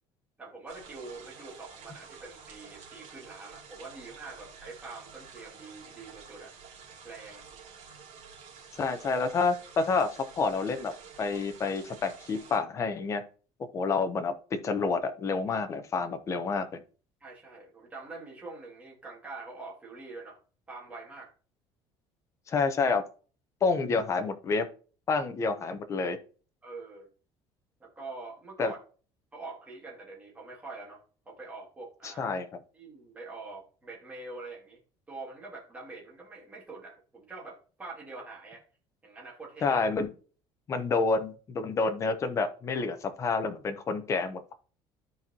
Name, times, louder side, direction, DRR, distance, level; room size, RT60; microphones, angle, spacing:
voice 1, 0.4-6.5 7.0-7.5 17.2-20.4 20.7-21.3 26.6-27.1 27.8-28.8 29.3-32.3 32.7-34.8 35.1-38.6 39.0-39.8, right 3 dB, 15° right, -4 dB, 2.2 m, -45 dB
sound 1, 0.7-12.6, right 6 dB, 80° right, 2.5 m, -50 dB
voice 2, 8.8-10.1 10.3-10.9 11.2-13.2 13.7-16.8 22.5-23.0 23.6-24.7 25.1-26.2 28.6-28.7 32.0-32.4 39.6-40.1 40.7-44.5, left 4 dB, 30° left, 8 dB, 0.8 m, -28 dB
13.5 x 4.5 x 2.9 m, 0.39 s
cardioid pair, 160°, 11 cm